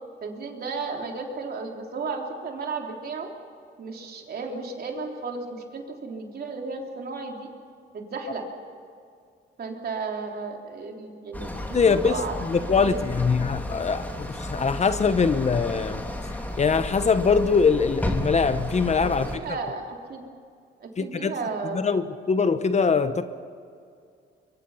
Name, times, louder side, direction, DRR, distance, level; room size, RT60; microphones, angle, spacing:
voice 1, 0.2-3.3 3.8-7.5 7.9-8.5 9.6-11.8 12.0-12.3 12.7-13.0 19.0-20.3 20.8-21.8, right 4 dB, 50° right, 2 dB, 3.5 m, -34 dB
sound 1, 11.3-19.4, left 1 dB, 10° left, 2.7 m, -33 dB
voice 2, 11.7-12.2 12.5-16.0 16.6-19.4 21.0-21.3 21.7-23.2, left 5 dB, 35° left, 11 dB, 1.0 m, -22 dB
23.5 x 22.5 x 5.7 m, 2.3 s
cardioid pair, 90°, 20 cm